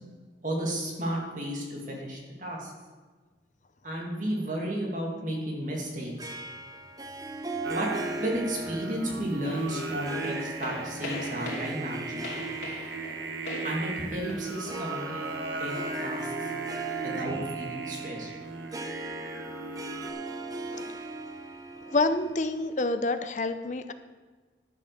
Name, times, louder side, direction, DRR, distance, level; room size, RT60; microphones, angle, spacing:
voice 1, 0.4-2.7 3.8-6.3 7.7-7.9 8.2-12.3 13.6-15.3 15.6-15.7 16.0-16.5 17.0-18.3, right 1 dB, 45° right, -2 dB, 2.2 m, -33 dB
Harp, 6.2-22.9, right 2 dB, 20° right, 0.6 m, -39 dB
Singing, 7.6-20.1, right 3 dB, 85° right, 1.0 m, -37 dB
sound 1, 9.4-14.7, left 2 dB, 80° left, 2.7 m, -41 dB
voice 2, 21.9-23.9, left 2 dB, 45° left, 10 dB, 0.6 m, -28 dB
11.5 x 6.4 x 6.6 m, 1.4 s
head